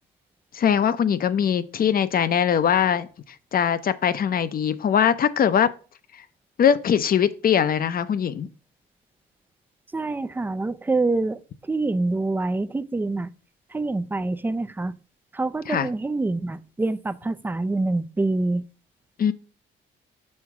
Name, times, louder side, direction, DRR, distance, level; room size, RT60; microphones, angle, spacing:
voice 1, 0.5-3.1 3.5-5.7 6.6-8.5 15.7-15.9 19.2-19.3, left 8 dB, 45° left, 0.6 m, -21 dB
voice 2, 9.9-11.4 11.7-13.3 13.7-15.0 15.3-18.6, right 2 dB, 10° right, 0.4 m, -26 dB
6.5 x 3.4 x 5.8 m
cardioid pair, 90°, 20 cm